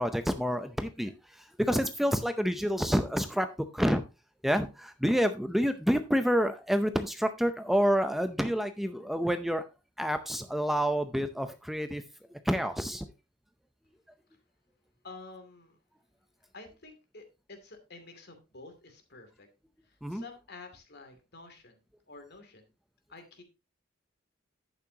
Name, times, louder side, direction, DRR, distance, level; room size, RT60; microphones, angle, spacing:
voice 1, 0.0-3.5 3.7-4.0 4.4-9.6 10.0-12.0 12.4-13.1 20.0-20.2, equal, ahead, 9 dB, 0.6 m, -28 dB
voice 2, 15.0-15.8 16.5-19.5 19.9-22.7 23.1-23.4, left 3 dB, 55° left, 6 dB, 2.6 m, -50 dB
11.0 x 8.8 x 2.8 m, 0.27 s
head